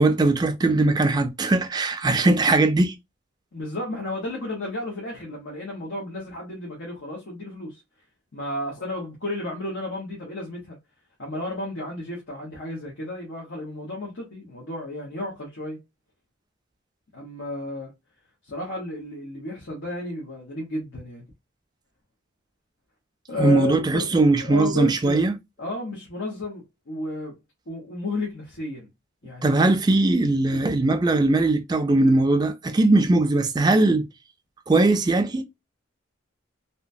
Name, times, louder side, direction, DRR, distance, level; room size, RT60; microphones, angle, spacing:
voice 1, 0.0-2.9 23.4-25.3 29.4-34.0 34.7-35.4, right 2 dB, 20° right, 0.3 m, -20 dB
voice 2, 3.5-7.8 8.3-10.8 11.2-15.8 17.1-17.9 18.5-21.2 23.3-25.2 25.6-27.3 27.7-28.9 29.2-29.6 30.5-30.6, left 2 dB, 85° left, 0.9 m, -33 dB
2.9 x 2.2 x 2.5 m
head